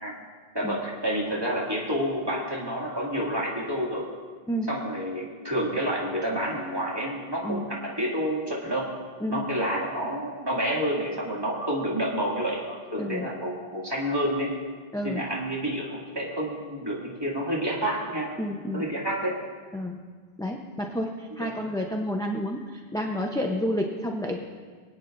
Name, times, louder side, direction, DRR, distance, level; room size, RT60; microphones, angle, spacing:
voice 1, 0.5-4.0 4.7-8.8 9.3-12.7 12.9-14.5 15.0-18.3 18.7-19.3 21.4-21.5, equal, 25° right, -5 dB, 2.4 m, -29 dB
voice 2, 14.9-15.2 18.4-18.9 19.7-20.0 20.4-24.4, equal, 5° left, 0 dB, 0.6 m, -30 dB
23.5 x 9.1 x 2.6 m, 1.5 s
omnidirectional pair, 1.0 m